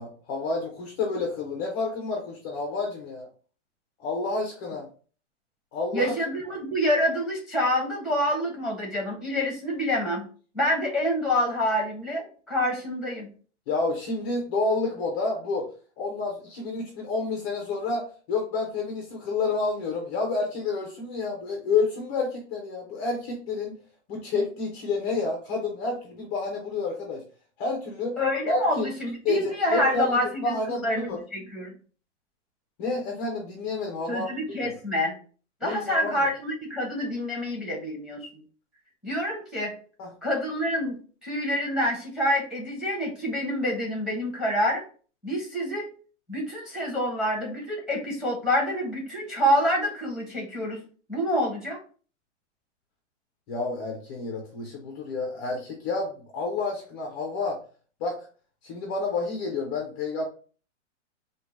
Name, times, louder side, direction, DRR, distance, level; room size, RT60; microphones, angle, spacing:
voice 1, 0.0-3.3 4.0-4.9 5.7-6.1 13.7-15.7 16.0-23.8 24.1-27.2 27.6-28.2 28.5-28.9 29.2-31.2 32.8-34.3 34.6-34.7 35.6-36.3 40.0-40.1 53.5-57.6 58.0-58.2 58.6-60.2, left 3 dB, 20° left, 1 dB, 0.4 m, -29 dB
voice 2, 5.9-10.3 10.5-13.3 28.2-31.1 31.3-31.7 34.1-35.1 35.6-38.3 39.0-39.7 40.2-41.0 41.2-44.8 45.2-45.9 46.3-50.8 51.1-51.8, equal, ahead, -1 dB, 0.9 m, -27 dB
4.6 x 2.1 x 3.9 m, 0.40 s
hypercardioid pair, 155°, 37 cm